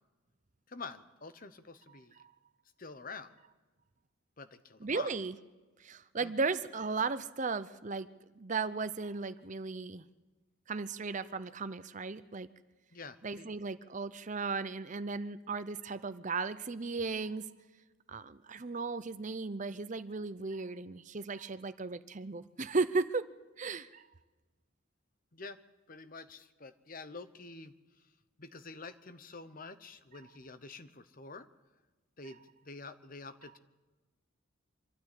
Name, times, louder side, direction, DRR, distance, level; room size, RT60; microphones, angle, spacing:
voice 1, 0.7-2.1 2.8-3.3 4.4-5.1 6.2-6.6 12.9-13.5 25.3-25.6 25.9-27.7 28.4-31.5 32.2-33.6, left 3 dB, 40° left, 11 dB, 1.0 m, -47 dB
voice 2, 4.8-5.3 5.8-8.1 8.3-10.0 10.7-12.5 13.2-17.5 18.1-23.3 23.6-24.0, right 4 dB, 35° right, 13 dB, 0.7 m, -36 dB
24.5 x 12.5 x 8.5 m, 1.2 s
head